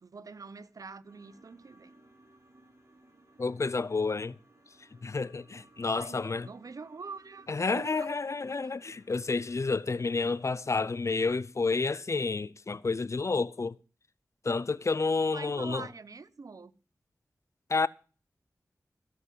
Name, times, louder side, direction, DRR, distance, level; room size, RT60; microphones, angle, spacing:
voice 1, 0.0-1.9 5.8-7.5 7.7-8.1 8.5-8.6 15.3-16.7, right 4 dB, 65° right, 0.9 m, -45 dB
sound 1, 1.0-10.5, right 2 dB, 50° right, 4.9 m, -62 dB
voice 2, 3.4-4.4 5.0-6.5 7.5-13.8 14.4-15.9 17.7-17.9, left 4 dB, 50° left, 0.5 m, -30 dB
15.5 x 5.7 x 7.6 m
cardioid pair, 45°, 6 cm